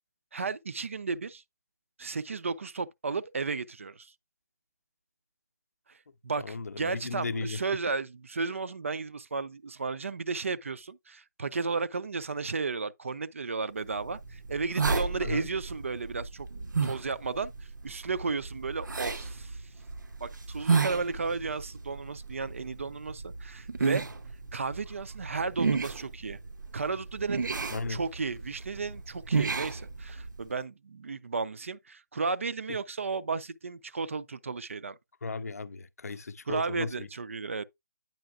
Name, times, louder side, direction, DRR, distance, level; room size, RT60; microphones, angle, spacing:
voice 1, 0.3-1.4 2.0-4.1 5.9-6.0 6.2-16.5 16.8-17.5 17.8-19.6 20.2-24.0 24.5-26.4 26.7-27.5 27.9-35.0 36.5-37.6, right 4 dB, 45° right, 0.4 m, -34 dB
voice 2, 6.4-7.6 15.2-15.5 27.7-28.0 35.2-37.1, left 4 dB, 55° left, 0.5 m, -35 dB
sound 1, 13.9-30.5, right 4 dB, 90° right, 0.8 m, -33 dB
9.0 x 5.6 x 2.4 m
hypercardioid pair, 175°, 10 cm